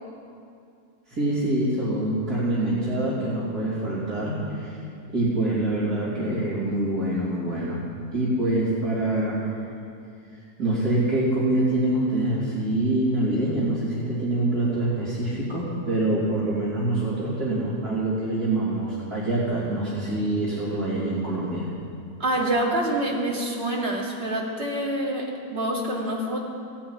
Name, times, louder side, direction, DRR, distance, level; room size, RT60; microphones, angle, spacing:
voice 1, 1.1-4.8 5.1-7.8 8.1-9.5 10.6-21.7, right 1 dB, 85° right, -10 dB, 3.8 m, -25 dB
voice 2, 22.2-26.4, right 1 dB, 40° right, -3 dB, 2.8 m, -26 dB
15.0 x 9.9 x 9.8 m, 2.4 s
omnidirectional pair, 1.6 m